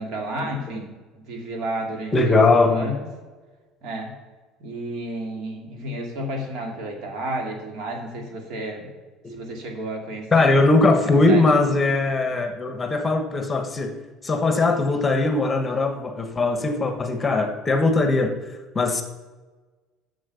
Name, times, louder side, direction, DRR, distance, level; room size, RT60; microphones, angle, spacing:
voice 1, 0.0-3.0 3.8-4.1 4.6-8.9 9.3-10.5 11.3-11.4, right 1 dB, 65° right, 2 dB, 2.4 m, -32 dB
voice 2, 2.1-3.0 9.2-9.3 10.3-14.0 14.2-18.4 18.7-19.0, left 3 dB, 20° left, 6 dB, 1.2 m, -20 dB
7.6 x 6.9 x 6.9 m, 1.3 s
supercardioid pair, 100°, 0 cm